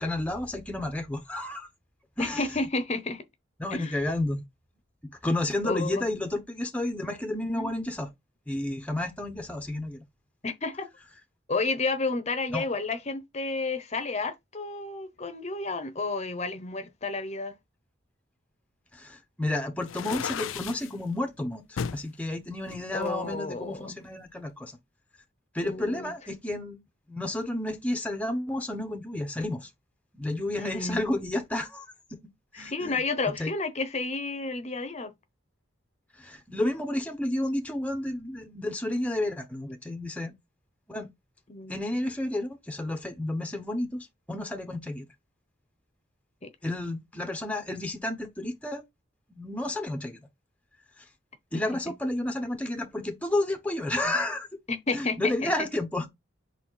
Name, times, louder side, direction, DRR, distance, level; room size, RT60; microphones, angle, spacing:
voice 1, 0.0-1.7 2.2-2.5 3.6-4.4 5.2-8.1 8.5-10.0 12.5-12.6 18.9-24.8 25.5-26.8 27.1-29.7 30.1-31.9 32.1-32.2 32.5-33.0 33.4-33.5 36.2-40.3 40.9-41.1 41.7-43.9 44.3-45.0 46.6-48.8 49.3-50.2 51.0-51.1 51.5-54.5 54.9-56.1, left 1 dB, 5° left, 0.9 m, -31 dB
voice 2, 2.2-3.2 3.7-4.0 5.6-6.1 7.5-7.7 10.4-10.9 11.5-17.6 22.9-24.0 25.6-26.1 30.6-31.0 32.5-35.1 41.5-41.8 46.4-46.5 51.5-51.6 54.7-55.5, left 3 dB, 35° left, 0.8 m, -31 dB
sound 1, 19.8-20.9 21.8-22.1 22.7-23.7, left 7 dB, 85° left, 0.4 m, -35 dB
5.6 x 4.1 x 4.6 m
head